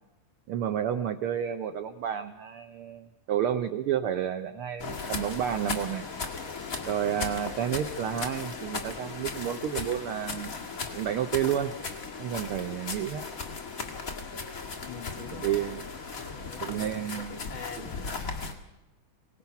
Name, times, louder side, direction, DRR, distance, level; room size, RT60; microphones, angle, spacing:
voice 1, 0.5-6.0 6.8-10.5 10.9-11.7 12.2-13.2 15.3-15.8 16.6-17.4, right 9 dB, 80° right, 9 dB, 1.2 m, -30 dB
sound 1, 4.8-18.5, left 4 dB, 30° left, 1.9 m, -37 dB
voice 2, 14.8-15.7 16.1-18.4, left 6 dB, 50° left, 3 dB, 1.9 m, -45 dB
24.0 x 19.5 x 5.9 m, 0.99 s
omnidirectional pair, 3.6 m